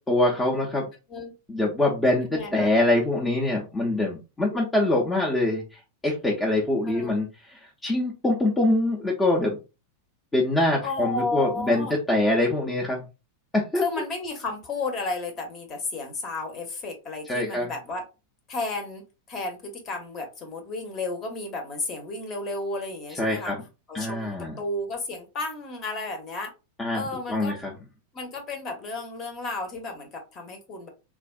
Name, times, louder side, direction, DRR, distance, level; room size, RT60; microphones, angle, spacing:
voice 1, 0.1-0.9 1.5-9.6 10.3-13.1 13.5-13.8 17.3-17.7 23.2-23.6 23.9-24.5 26.8-27.0 27.3-27.7, left 1 dB, 15° left, -2 dB, 0.6 m, -24 dB
voice 2, 2.2-2.7 6.8-7.2 10.8-11.9 13.7-18.0 18.5-23.5 23.9-26.5 26.9-27.6 28.1-30.9, left 3 dB, 30° left, 4 dB, 1.0 m, -33 dB
3.4 x 2.4 x 2.3 m, 0.29 s
figure-of-eight pair, 90°, 0 cm